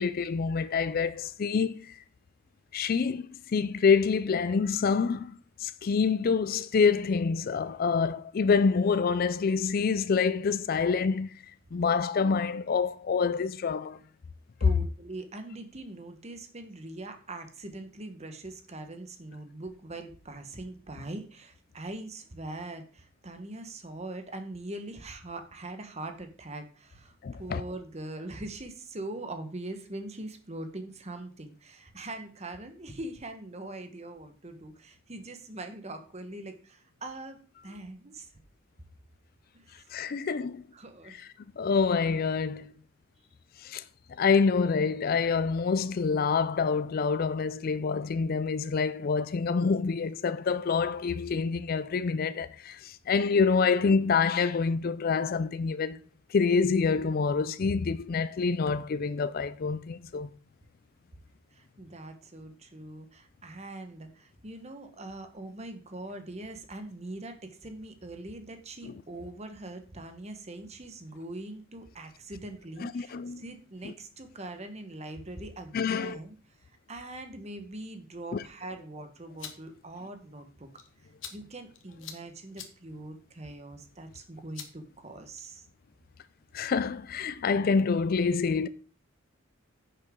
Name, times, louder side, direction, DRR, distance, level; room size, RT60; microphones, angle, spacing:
voice 1, 0.0-2.0 2.7-11.3 11.7-14.0 27.2-27.6 39.9-40.6 41.2-41.3 41.6-42.7 43.6-43.8 44.1-56.0 56.3-60.3 68.8-68.9 72.8-73.4 73.8-73.9 75.7-76.2 78.3-78.4 86.5-88.7, left 5 dB, 45° left, 0.4 m, -27 dB
voice 2, 14.6-37.4 37.6-38.3 39.5-39.9 40.2-40.3 40.7-41.2 61.5-76.4 76.9-80.7 81.3-85.7, right 2 dB, 30° right, 1.2 m, -42 dB
sound 1, 79.1-85.7, left 8 dB, 65° left, 1.3 m, -50 dB
10.0 x 6.8 x 3.7 m
head